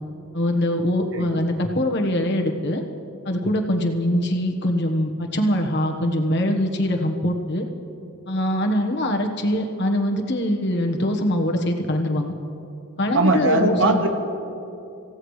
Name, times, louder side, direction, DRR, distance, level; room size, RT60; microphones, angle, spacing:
voice 1, 0.3-2.8 3.2-7.7 8.3-12.3 13.0-14.0, left 1 dB, 55° left, 3 dB, 1.3 m, -23 dB
voice 2, 13.1-14.1, right 2 dB, 60° right, 5 dB, 1.4 m, -20 dB
26.0 x 16.0 x 3.2 m, 2.8 s
head